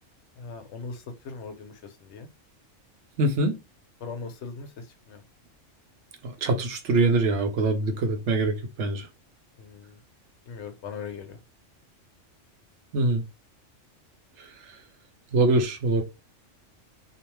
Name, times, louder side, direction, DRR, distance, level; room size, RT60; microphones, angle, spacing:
voice 1, 0.4-2.3 4.0-5.2 9.6-10.0 10.5-11.4, left 5 dB, 70° left, 0.8 m, -40 dB
voice 2, 3.2-3.6 6.2-9.1 12.9-13.2 14.4-14.8 15.3-16.0, right 2 dB, 70° right, 0.9 m, -24 dB
2.6 x 2.1 x 2.9 m
omnidirectional pair, 1.3 m